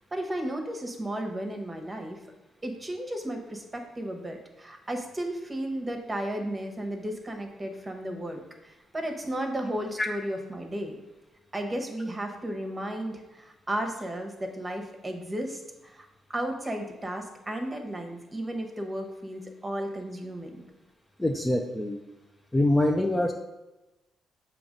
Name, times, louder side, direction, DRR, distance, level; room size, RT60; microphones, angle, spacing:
voice 1, 0.0-2.2 2.6-11.0 11.5-20.6, right 1 dB, 20° right, 3 dB, 1.0 m, -34 dB
voice 2, 21.2-22.0 22.5-23.3, left 1 dB, 10° left, 2 dB, 0.5 m, -24 dB
6.9 x 2.9 x 5.2 m, 1.0 s
cardioid pair, 90°, 0 cm